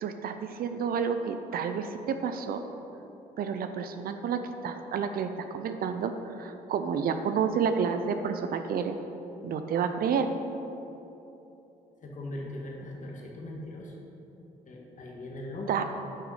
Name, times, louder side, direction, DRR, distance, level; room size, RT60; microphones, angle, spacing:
voice 1, 0.0-2.6 3.4-6.1 6.4-9.0 9.4-10.3 15.7-15.8, right 6 dB, 60° right, 8 dB, 0.7 m, -30 dB
voice 2, 12.0-13.9 14.7-15.8, left 1 dB, 50° left, -1 dB, 1.9 m, -40 dB
9.3 x 5.9 x 5.6 m, 3.0 s
hypercardioid pair, 55°, 17 cm